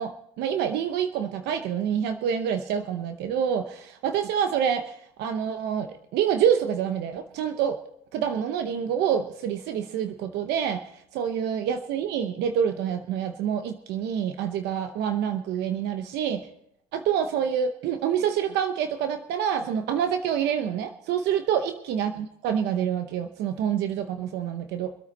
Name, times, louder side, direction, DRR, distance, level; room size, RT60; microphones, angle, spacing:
voice 1, 0.0-7.8 8.1-10.8 11.1-16.5 16.9-24.9, right 8 dB, 85° right, 7 dB, 0.8 m, -27 dB
24.5 x 8.7 x 4.1 m, 0.76 s
cardioid pair, 110°, 17 cm